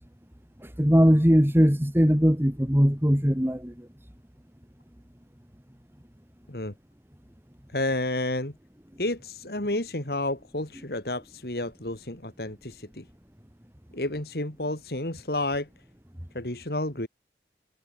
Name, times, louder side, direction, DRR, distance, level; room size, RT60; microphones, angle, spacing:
voice 1, 0.8-3.7, equal, 15° right, 2.5 m, -20 dB
voice 2, 7.7-8.5 9.0-13.0 13.9-15.7 16.3-17.1, left 1 dB, 60° left, 2.8 m, -30 dB
head